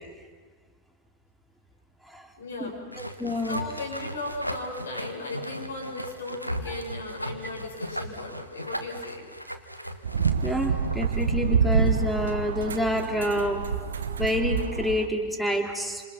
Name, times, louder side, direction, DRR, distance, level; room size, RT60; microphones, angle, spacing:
voice 1, 2.4-2.8 3.5-9.2, left 2 dB, 70° left, -2 dB, 7.6 m, -36 dB
sound 1, 2.9-11.1, equal, 90° right, 1.5 m, -37 dB
voice 2, 3.0-3.6 10.4-13.6 14.2-16.0, left 1 dB, ahead, 4 dB, 3.3 m, -28 dB
sound 2, 10.0-15.1, right 6 dB, 70° right, 1.3 m, -27 dB
28.5 x 27.5 x 5.8 m, 1.5 s
figure-of-eight pair, 90°, 0 cm